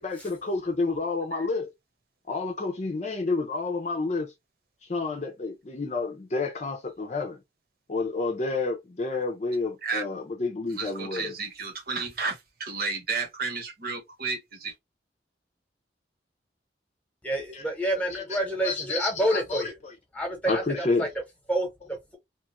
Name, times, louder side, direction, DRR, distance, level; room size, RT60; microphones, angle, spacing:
voice 1, 0.0-1.7 2.3-4.3 4.9-7.4 7.9-11.4 17.5-17.7 17.9-20.0 20.4-21.1, left 3 dB, 40° left, 0.6 m, -30 dB
voice 2, 10.7-14.7, right 4 dB, 55° right, 1.1 m, -32 dB
voice 3, 17.2-19.8 20.1-21.1 21.5-22.2, right 1 dB, 10° left, 1.0 m, -28 dB
3.0 x 2.4 x 2.9 m
head